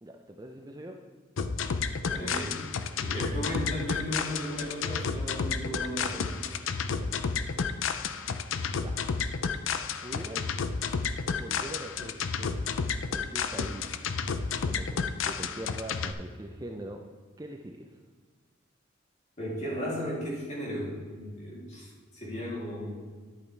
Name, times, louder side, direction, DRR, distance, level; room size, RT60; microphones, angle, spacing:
voice 1, 0.0-1.0 6.8-7.5 8.8-8.9 9.9-10.7 11.3-12.7 13.1-14.0 14.6-17.0 17.4-18.0, right 1 dB, 20° right, 3 dB, 0.5 m, -43 dB
sound 1, 1.4-16.1, left 5 dB, 80° left, 0.5 m, -31 dB
voice 2, 2.0-2.6 3.0-6.4 19.4-22.9, equal, 35° left, -5 dB, 2.8 m, -35 dB
11.0 x 8.3 x 3.3 m, 1.5 s
head